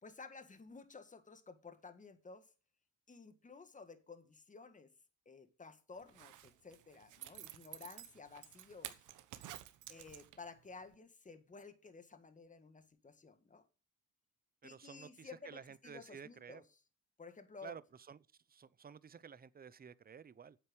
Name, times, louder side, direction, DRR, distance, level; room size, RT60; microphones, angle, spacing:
voice 1, 0.0-2.5 3.1-4.9 5.2-9.0 9.9-13.6 14.6-16.6 17.2-17.7, left 4 dB, 25° left, 1.7 m, -54 dB
Zipper (clothing), 6.0-10.6 10.9-11.0, right 13 dB, 85° right, 1.2 m, -51 dB
voice 2, 14.6-16.6 17.6-18.2 18.5-20.6, right 6 dB, 30° right, 0.7 m, -53 dB
9.2 x 8.1 x 6.2 m
cardioid pair, 90°, 30 cm